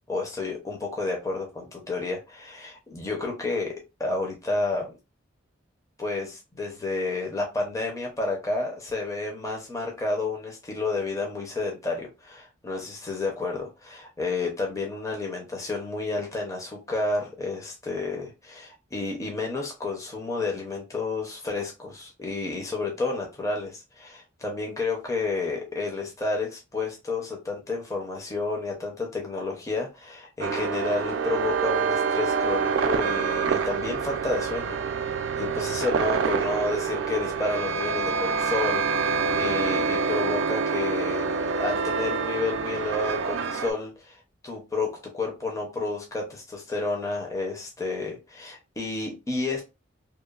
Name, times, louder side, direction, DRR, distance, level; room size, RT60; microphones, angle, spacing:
voice 1, 0.1-3.7 4.0-4.9 6.0-49.6, left 3 dB, 15° left, 0.5 m, -31 dB
sound 1, 30.4-43.7, right 5 dB, 75° right, 0.3 m, -26 dB
2.9 x 2.0 x 2.3 m
head